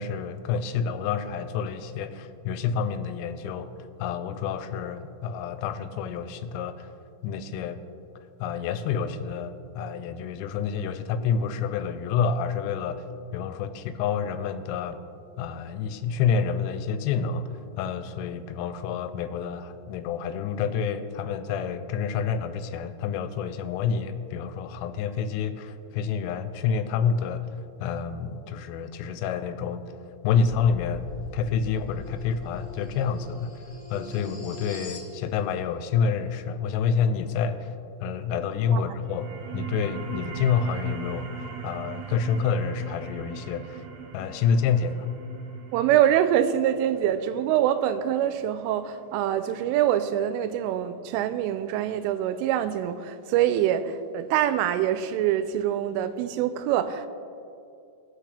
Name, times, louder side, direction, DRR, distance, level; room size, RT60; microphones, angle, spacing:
voice 1, 0.0-3.7 4.0-6.9 7.2-7.8 8.4-13.1 13.3-15.0 15.4-27.5 27.8-29.8 30.2-31.0 31.3-33.5 33.9-37.7 38.0-41.3 41.6-43.8 44.1-45.1, left 6 dB, 90° left, 3.2 m, -28 dB
sound 1, 30.3-35.1, left 2 dB, 55° left, 3.6 m, -40 dB
sound 2, 38.9-50.0, right 7 dB, 70° right, 2.8 m, -40 dB
voice 2, 45.7-57.1, right 11 dB, 85° right, 3.0 m, -25 dB
18.5 x 6.4 x 3.3 m
omnidirectional pair, 5.6 m